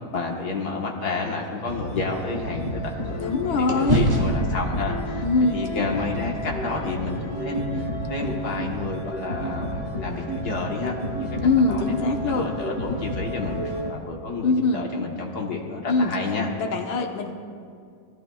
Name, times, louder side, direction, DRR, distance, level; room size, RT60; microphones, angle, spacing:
voice 1, 0.1-11.4 11.7-11.9 12.3-16.5, left 3 dB, 55° left, 0 dB, 1.8 m, -30 dB
sound 1, 1.0-3.3 3.7-7.9, right 1 dB, 20° right, 1.9 m, -29 dB
sound 2, 1.7-13.9, equal, 35° left, 2.1 m, -31 dB
voice 2, 3.2-4.1 5.2-5.6 11.4-12.5 14.4-14.9 15.9-16.2 16.6-17.3, left 3 dB, 75° left, 3 dB, 1.8 m, -22 dB
20.5 x 15.5 x 2.3 m, 2.2 s
omnidirectional pair, 2.2 m